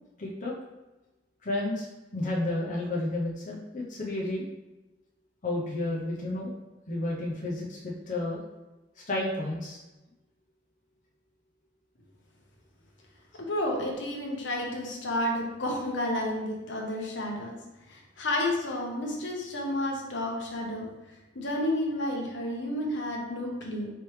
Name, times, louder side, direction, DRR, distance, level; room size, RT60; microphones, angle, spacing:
voice 1, 0.2-0.5 1.4-1.9 2.1-4.5 5.4-6.5 6.9-8.4 9.1-9.8, left 2 dB, 45° left, -4 dB, 0.6 m, -31 dB
voice 2, 13.5-17.5 17.9-20.9 21.3-23.9, left 1 dB, 75° left, 0 dB, 0.9 m, -31 dB
4.4 x 3.2 x 3.1 m, 1.1 s
head